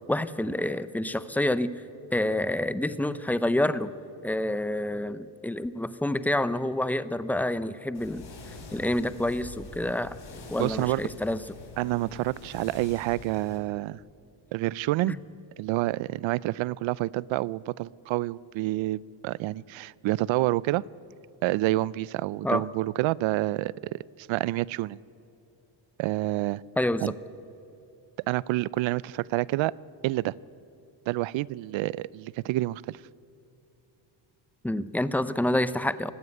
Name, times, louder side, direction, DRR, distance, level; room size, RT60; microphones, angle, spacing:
voice 1, 0.1-1.8 2.1-3.9 4.2-8.2 8.7-10.2 10.5-11.4 15.1-15.2 22.4-22.6 26.8-27.1 34.6-36.1, left 1 dB, 5° left, 14 dB, 0.6 m, -28 dB
sound 1, 7.9-13.6, left 3 dB, 50° left, 5.0 m, -45 dB
voice 2, 10.6-11.0 11.8-14.0 14.5-15.2 15.6-20.8 21.4-25.0 26.0-26.6 27.0-27.1 28.3-29.7 30.0-30.3 31.1-33.0, right 17 dB, 70° right, 23 dB, 0.5 m, -28 dB
19.5 x 15.0 x 9.7 m, 2.8 s
cardioid pair, 110°, 47 cm